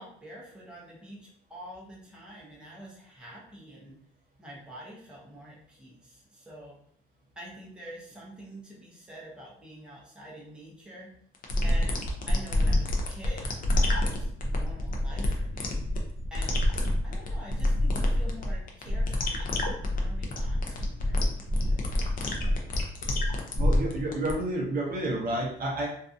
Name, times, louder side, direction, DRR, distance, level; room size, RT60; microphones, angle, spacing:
voice 1, 0.0-4.0 4.4-6.8 7.4-11.1 11.6-16.6 17.0-21.9, right 1 dB, 5° right, -5 dB, 0.7 m, -47 dB
sound 1, 11.3-24.3, left 1 dB, 45° left, 0.5 m, -27 dB
voice 2, 23.6-25.9, right 1 dB, 45° right, -1 dB, 0.6 m, -30 dB
2.6 x 2.3 x 2.4 m, 0.63 s
cardioid pair, 145°, 20 cm